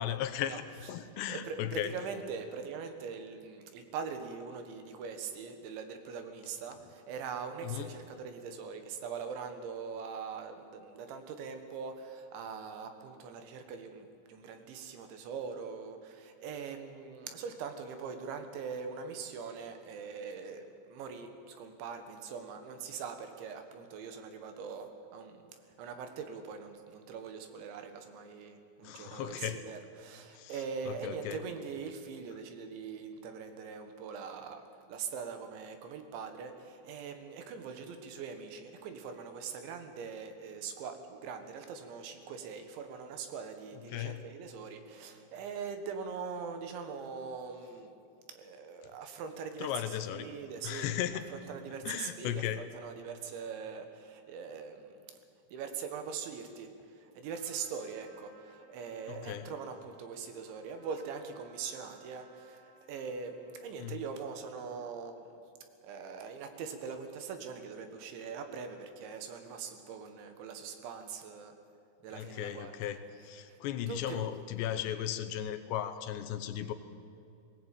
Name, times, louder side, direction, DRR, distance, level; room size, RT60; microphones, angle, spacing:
voice 1, 0.0-2.0 7.6-7.9 28.8-29.6 30.3-31.4 43.7-44.2 49.6-50.4 50.6-51.4 51.9-52.7 59.1-59.5 63.8-64.0 72.1-76.7, left 11 dB, 75° left, 9 dB, 3.0 m, -36 dB
voice 2, 1.3-25.5 25.8-34.6 34.9-47.9 48.3-50.9 51.3-55.0 55.5-56.7 57.0-65.4 65.8-71.5 72.0-72.7 73.4-73.6 73.9-74.3, right 6 dB, 85° right, 7 dB, 3.9 m, -42 dB
Trumpet, 57.3-64.0, right 3 dB, 40° right, 5.6 m, -63 dB
19.0 x 18.5 x 9.1 m, 2.5 s
omnidirectional pair, 5.1 m